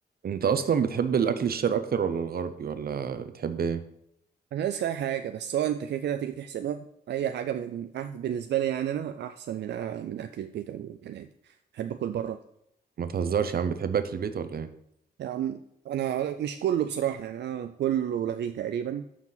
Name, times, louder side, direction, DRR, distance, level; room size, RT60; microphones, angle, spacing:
voice 1, 0.2-3.8 13.0-14.7, right 7 dB, 60° right, 11 dB, 0.8 m, -27 dB
voice 2, 4.5-12.4 15.2-19.1, right 10 dB, 85° right, 8 dB, 0.4 m, -31 dB
13.0 x 4.7 x 4.0 m, 0.76 s
cardioid pair, 90°, 17 cm